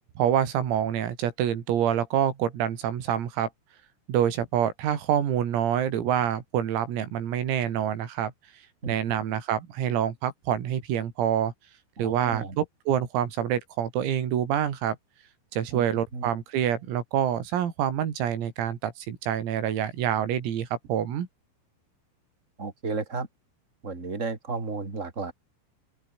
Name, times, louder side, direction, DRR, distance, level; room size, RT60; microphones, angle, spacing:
voice 1, 0.2-3.5 4.1-8.3 8.9-11.5 12.0-15.0 15.5-21.3, right 10 dB, 85° right, 5.9 m, -26 dB
voice 2, 12.0-12.6 15.7-15.9 16.1-16.3 22.6-23.3 23.8-25.3, right 4 dB, 15° right, 3.7 m, -33 dB
open air
omnidirectional pair, 6.0 m